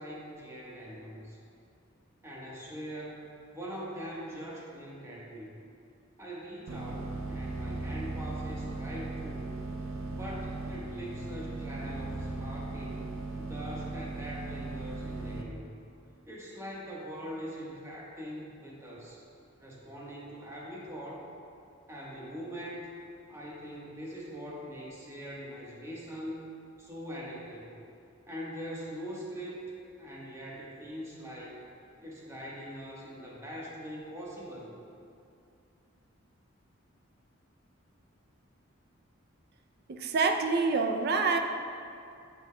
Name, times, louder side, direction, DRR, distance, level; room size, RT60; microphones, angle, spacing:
voice 1, 0.0-1.4 2.2-5.6 6.2-9.5 10.1-13.1 13.4-15.7 16.3-19.3 19.6-21.3 21.9-22.9 23.3-26.4 26.8-27.8 28.3-29.6 30.0-31.7 32.0-34.7, equal, 15° right, -5 dB, 1.2 m, -42 dB
sound 1, 6.7-15.4, right 2 dB, 85° right, 0.7 m, -37 dB
voice 2, 39.9-41.4, right 4 dB, 50° right, 5 dB, 0.4 m, -26 dB
9.4 x 7.2 x 2.2 m, 2.5 s
head